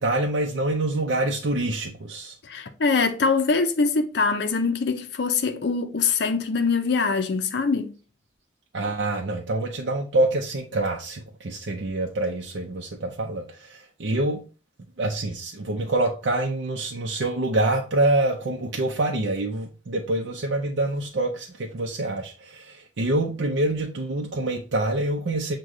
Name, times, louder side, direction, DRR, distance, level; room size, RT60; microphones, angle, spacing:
voice 1, 0.0-2.4 8.7-14.4 15.0-25.6, right 2 dB, 70° right, 0.6 m, -26 dB
voice 2, 2.4-7.9, left 4 dB, 60° left, 0.5 m, -23 dB
6.3 x 2.2 x 3.7 m
head